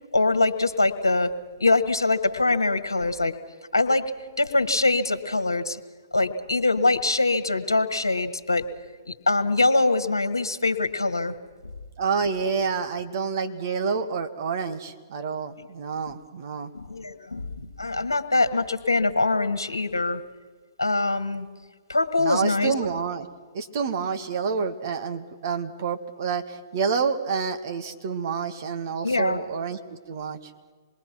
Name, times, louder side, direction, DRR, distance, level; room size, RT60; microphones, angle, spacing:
voice 1, 0.1-1.3 1.6-3.3 3.7-4.1 4.4-5.8 6.1-8.6 9.3-11.3 16.9-20.2 20.8-21.5 21.9-22.8 29.0-29.4, left 2 dB, 90° left, 8 dB, 1.6 m, -23 dB
voice 2, 12.0-16.7 22.2-23.3 23.5-30.4, right 5 dB, 50° right, 6 dB, 2.0 m, -28 dB
27.0 x 21.5 x 6.0 m, 1.5 s
figure-of-eight pair, 125°, 2 cm